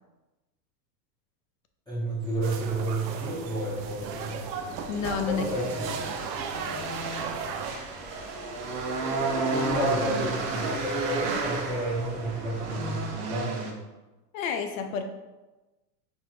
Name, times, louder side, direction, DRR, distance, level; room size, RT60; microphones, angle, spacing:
voice 1, 1.9-4.4 5.2-5.8 9.5-13.7, right 1 dB, 10° left, -9 dB, 0.7 m, -31 dB
sound 1, 2.3-13.7, right 3 dB, 55° right, 1.0 m, -32 dB
sound 2, 2.4-7.7, right 6 dB, 85° right, 0.7 m, -37 dB
sound 3, 3.6-13.2, left 2 dB, 35° left, 1.3 m, -50 dB
voice 2, 4.9-5.5 14.3-15.0, left 6 dB, 55° left, 7 dB, 0.6 m, -29 dB
4.6 x 2.6 x 4.2 m, 1.1 s
supercardioid pair, 155°, 49 cm